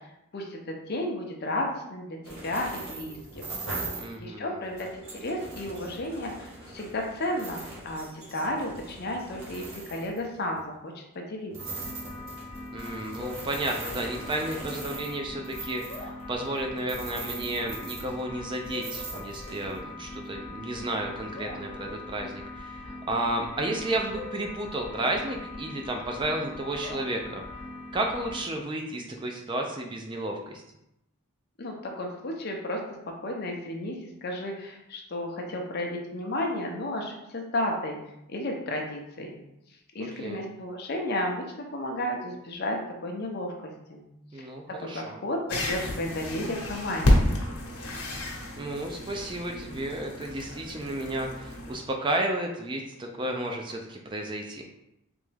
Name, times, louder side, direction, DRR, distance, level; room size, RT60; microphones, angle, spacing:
voice 1, 0.3-3.4 4.2-7.6 7.8-11.8 31.6-32.8 33.2-38.0 38.3-39.4 39.9-43.5 43.9-44.0 44.4-44.5 44.8-47.3, left 1 dB, 45° left, 1 dB, 0.6 m, -33 dB
sound 1, 2.2-4.2 4.6-10.6 11.5-18.4 18.7-19.8, right 3 dB, 55° right, 0.9 m, -41 dB
voice 2, 4.0-4.7 12.7-27.4 27.9-30.6 40.0-40.4 44.3-45.2 48.6-54.6, right 1 dB, 20° right, 1 dB, 0.3 m, -32 dB
sound 2, 11.6-28.4, left 2 dB, 25° left, 1.1 m, -41 dB
sound 3, 45.5-51.8, left 1 dB, 85° left, 0.9 m, -29 dB
3.5 x 3.0 x 3.3 m, 0.85 s
head